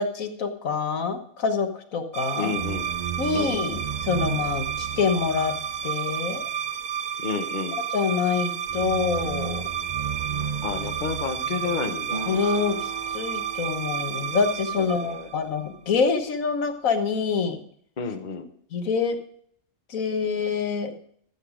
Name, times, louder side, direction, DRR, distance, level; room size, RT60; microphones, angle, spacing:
voice 1, 0.0-2.5 3.2-5.5 5.8-6.5 7.9-9.6 12.3-17.6 18.7-19.2 19.9-20.9, left 5 dB, 90° left, 7 dB, 1.6 m, -26 dB
sound 1, 2.1-15.8, right 8 dB, 85° right, 0.3 m, -30 dB
voice 2, 2.4-2.9 3.3-3.6 7.2-7.8 10.6-12.3 14.8-15.3 18.0-18.5, left 5 dB, 40° left, 7 dB, 1.0 m, -31 dB
Acoustic guitar, 12.1-15.9, right 4 dB, 35° right, 6.6 m, -41 dB
13.5 x 8.1 x 5.0 m, 0.63 s
omnidirectional pair, 1.4 m